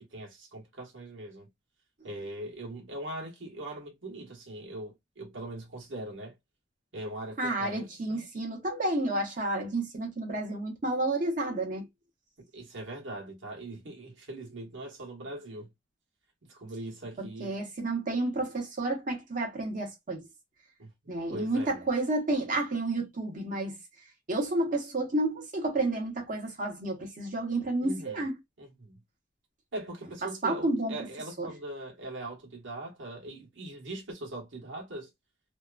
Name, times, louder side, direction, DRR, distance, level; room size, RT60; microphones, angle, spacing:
voice 1, 0.1-1.5 2.0-6.3 6.9-7.8 8.1-8.2 12.5-15.7 16.5-17.6 20.8-21.8 27.8-28.2 28.6-29.0 29.7-35.1, right 1 dB, 90° right, 1.2 m, -41 dB
voice 2, 7.4-11.9 17.2-20.3 21.1-23.8 24.3-28.4 30.2-30.9 31.4-31.5, right 2 dB, 45° right, 1.0 m, -30 dB
2.8 x 2.3 x 2.3 m
head